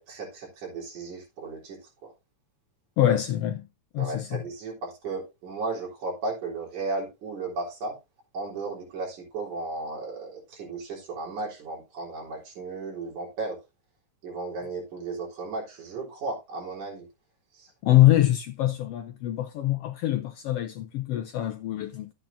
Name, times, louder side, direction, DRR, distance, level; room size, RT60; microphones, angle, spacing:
voice 1, 0.0-2.1 4.0-8.0 8.3-13.6 14.2-17.0 17.5-17.7, right 3 dB, 80° right, 5.1 m, -35 dB
voice 2, 3.0-3.7 3.9-4.4 17.8-22.1, left 14 dB, 75° left, 1.4 m, -24 dB
12.5 x 8.8 x 2.6 m
omnidirectional pair, 3.3 m